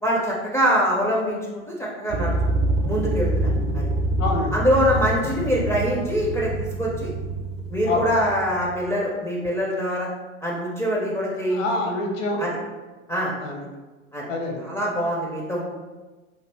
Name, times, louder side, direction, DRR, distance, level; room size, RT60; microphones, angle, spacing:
voice 1, 0.0-2.4 2.9-3.9 4.5-7.1 7.7-10.1 10.4-11.6 12.4-12.5 13.1-13.3 14.1-14.2 14.6-15.6, equal, 5° left, -4 dB, 0.4 m, -24 dB
sound 1, 2.1-8.8, right 1 dB, 50° right, 0.7 m, -26 dB
voice 2, 4.2-4.6 7.9-8.1 11.4-12.4 13.4-13.6 14.3-14.7, left 2 dB, 70° left, 1 dB, 0.9 m, -26 dB
3.3 x 2.3 x 3.3 m, 1.2 s
hypercardioid pair, 95°, 40 cm